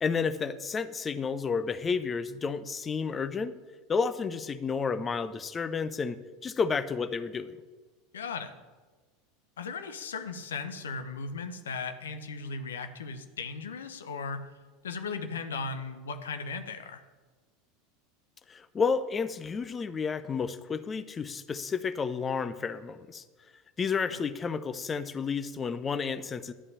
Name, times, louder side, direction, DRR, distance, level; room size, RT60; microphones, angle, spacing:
voice 1, 0.0-3.5 3.9-7.6 18.5-23.2 23.8-26.5, left 5 dB, 25° left, 12 dB, 0.7 m, -31 dB
voice 2, 8.1-8.5 9.6-14.4 14.8-17.0 24.1-24.2, left 4 dB, 75° left, 8 dB, 1.1 m, -37 dB
11.5 x 5.4 x 8.3 m, 1.3 s
figure-of-eight pair, 80°, 0 cm